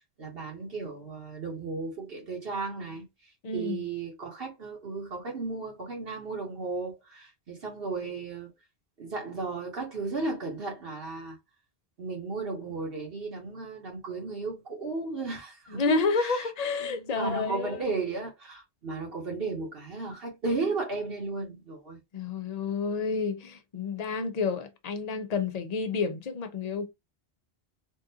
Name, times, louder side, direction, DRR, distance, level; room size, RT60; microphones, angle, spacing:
voice 1, 0.2-8.5 9.0-11.4 12.0-16.5 17.0-22.0, right 3 dB, 60° right, 1.1 m, -35 dB
voice 2, 3.4-3.8 15.7-17.8 22.1-26.9, left 4 dB, 45° left, 0.6 m, -30 dB
3.6 x 2.4 x 2.7 m
omnidirectional pair, 1.1 m